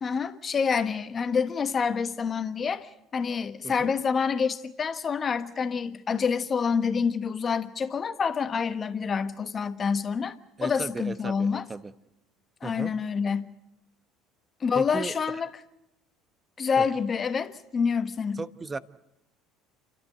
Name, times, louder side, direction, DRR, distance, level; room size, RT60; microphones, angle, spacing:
voice 1, 0.0-10.3 10.6-11.6 12.6-13.5 14.6-15.5 16.6-18.4, left 6 dB, 35° left, 1.4 m, -27 dB
voice 2, 10.6-11.9 12.6-12.9 14.7-15.1 16.8-16.9 18.4-18.8, right 3 dB, 25° right, 1.0 m, -36 dB
28.0 x 13.0 x 9.6 m
hypercardioid pair, 75°, 0 cm